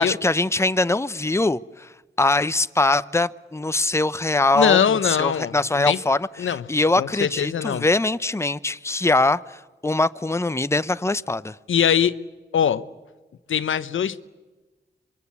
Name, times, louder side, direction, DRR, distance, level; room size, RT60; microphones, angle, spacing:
voice 1, 0.0-1.9 2.2-11.6, left 2 dB, 15° left, 0.8 m, -22 dB
voice 2, 4.5-6.0 6.4-6.6 7.0-7.8 11.7-12.2 12.5-12.8 13.5-14.3, left 8 dB, 80° left, 0.8 m, -22 dB
25.5 x 22.5 x 8.4 m
cardioid pair, 45°, 20 cm